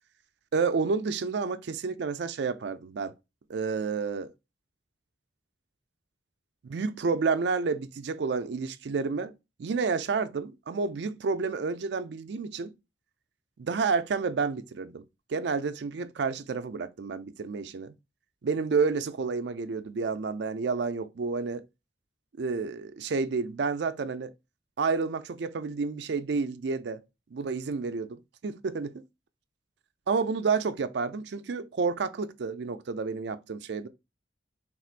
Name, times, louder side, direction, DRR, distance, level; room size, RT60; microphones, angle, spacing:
voice 1, 0.5-3.1 3.5-4.3 6.6-9.3 9.6-12.7 13.6-15.0 15.3-17.9 18.4-21.6 22.4-24.3 24.8-27.0 27.3-29.0 30.1-33.9, right 4 dB, 65° right, 0.4 m, -30 dB
3.5 x 2.4 x 4.5 m
head